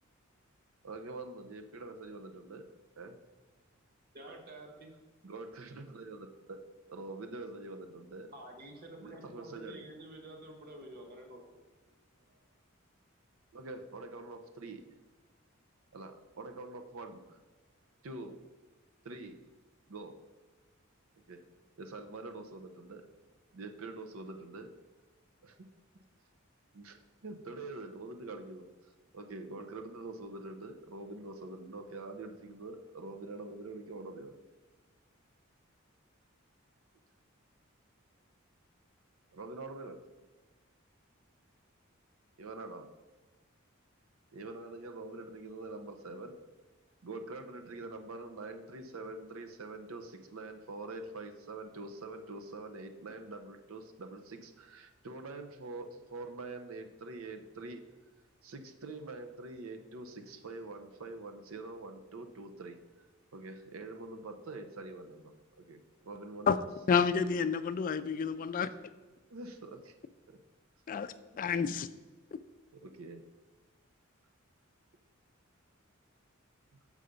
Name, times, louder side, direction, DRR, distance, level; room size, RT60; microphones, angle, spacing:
voice 1, 0.8-2.6 3.0-3.2 4.3-4.4 5.2-6.6 6.9-8.3 9.0-9.9 13.5-14.8 15.9-17.4 18.0-18.4 19.0-19.4 19.9-20.1 21.3-21.4 21.8-23.1 23.5-24.7 25.4-25.7 26.7-34.4 39.3-40.0 42.4-42.8 44.3-46.4 47.0-57.8 58.4-62.8 63.3-66.7 69.3-69.9 70.3-70.4 72.7-73.2, right 2 dB, 85° right, 6 dB, 0.7 m, -45 dB
voice 2, 4.1-4.9 8.3-12.0 12.3-12.4, right 1 dB, 50° right, 3 dB, 1.4 m, -50 dB
voice 3, 66.9-68.7 70.9-71.1 71.4-71.9, left 6 dB, 40° left, 12 dB, 0.3 m, -29 dB
6.8 x 4.9 x 5.1 m, 1.3 s
head